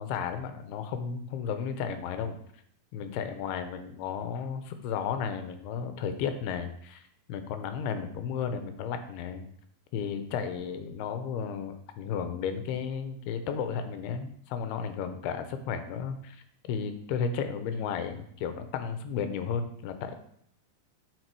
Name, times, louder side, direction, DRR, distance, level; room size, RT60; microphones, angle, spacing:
voice 1, 0.0-2.4 2.9-7.0 7.3-9.4 9.9-16.4 16.7-20.2, left 7 dB, 80° left, 8 dB, 2.7 m, -33 dB
11.0 x 5.3 x 4.7 m, 0.67 s
omnidirectional pair, 4.9 m